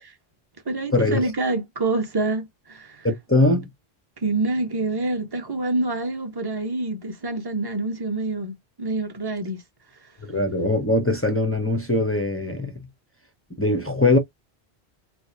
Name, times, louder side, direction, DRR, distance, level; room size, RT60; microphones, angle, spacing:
voice 1, 0.6-3.1 4.2-9.6, right 2 dB, 25° right, 0.9 m, -26 dB
voice 2, 3.0-3.7 10.3-12.8 13.6-14.2, left 2 dB, 15° left, 0.5 m, -21 dB
4.7 x 2.0 x 2.7 m
omnidirectional pair, 1.1 m